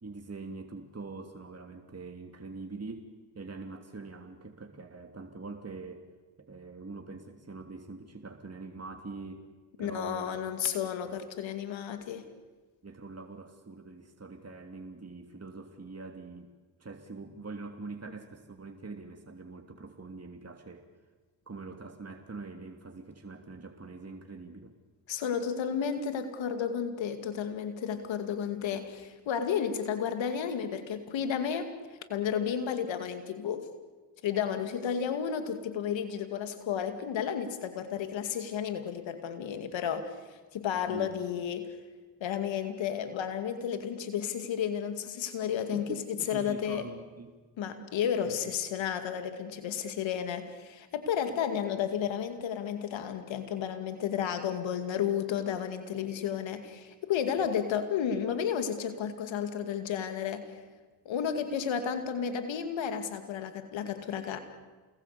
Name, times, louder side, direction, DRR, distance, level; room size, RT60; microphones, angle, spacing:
voice 1, 0.0-3.1 3.3-6.1 6.4-9.5 9.8-10.4 11.1-11.2 12.8-16.5 16.8-20.9 21.5-24.7 40.9-41.1 45.7-47.4 47.7-47.9 48.2-48.6, right 3 dB, 35° right, 4 dB, 3.0 m, -44 dB
voice 2, 9.8-12.3 25.1-31.7 32.1-33.7 34.2-40.1 40.5-41.8 42.2-46.8 47.6-60.4 61.1-64.4, left 8 dB, 85° left, 8 dB, 2.4 m, -32 dB
28.5 x 20.0 x 8.5 m, 1.3 s
supercardioid pair, 45°, 45 cm